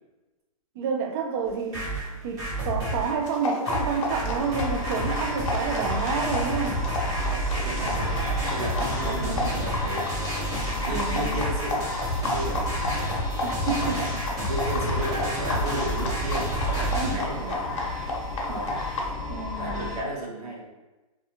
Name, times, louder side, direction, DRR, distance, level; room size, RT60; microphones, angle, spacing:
voice 1, 0.8-1.9 2.2-6.8 9.0-9.6 10.9-11.4 13.4-14.5 15.1-15.2 16.9-17.2 18.5-19.0 19.3-20.0, right 5 dB, 40° right, 4 dB, 0.4 m, -30 dB
sound 1, 1.5-3.1 3.7-17.1, right 1 dB, 20° right, 0.7 m, -30 dB
sound 2, 3.2-19.1, left 2 dB, 55° left, 0.7 m, -33 dB
sound 3, 4.4-20.0, left 2 dB, ahead, 1.0 m, -34 dB
voice 2, 5.3-6.1 7.2-10.3 10.8-11.9 12.2-12.7 13.8-14.1 14.5-17.8 18.4-18.8 19.6-20.7, right 1 dB, 90° right, -3 dB, 0.9 m, -34 dB
2.5 x 2.3 x 2.7 m, 1.1 s
hypercardioid pair, 145°, 19 cm